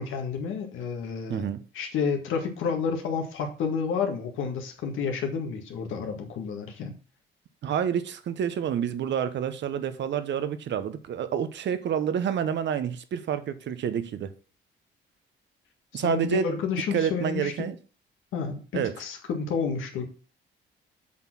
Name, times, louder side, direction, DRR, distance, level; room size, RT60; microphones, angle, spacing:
voice 1, 0.0-1.4 1.7-7.0 15.9-17.7 18.3-20.1, left 6 dB, 85° left, 1.9 m, -30 dB
voice 2, 1.3-1.6 7.6-14.3 15.9-16.6 16.9-17.8 18.7-18.9, right 8 dB, 65° right, 0.9 m, -28 dB
7.3 x 4.4 x 6.0 m
cardioid pair, 90°, 20 cm